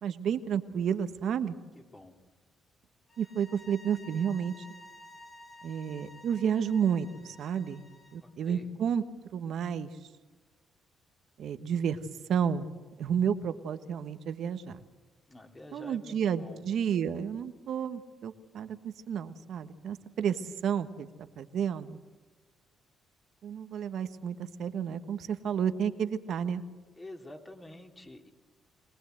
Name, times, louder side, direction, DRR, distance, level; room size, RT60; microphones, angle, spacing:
voice 1, 0.0-1.5 3.2-4.6 5.6-7.8 8.1-9.0 9.3-9.9 11.4-12.0 12.3-12.7 13.0-14.8 15.7-18.8 19.1-22.0 23.4-26.6, right 8 dB, 70° right, 10 dB, 1.3 m, -31 dB
voice 2, 1.7-2.1 8.2-8.7 15.3-16.6 27.0-28.3, left 1 dB, 20° left, 3 dB, 3.1 m, -48 dB
sound 1, 3.1-8.2, left 1 dB, 35° left, 3.7 m, -53 dB
24.0 x 18.5 x 7.9 m, 1.2 s
cardioid pair, 90°, 0 cm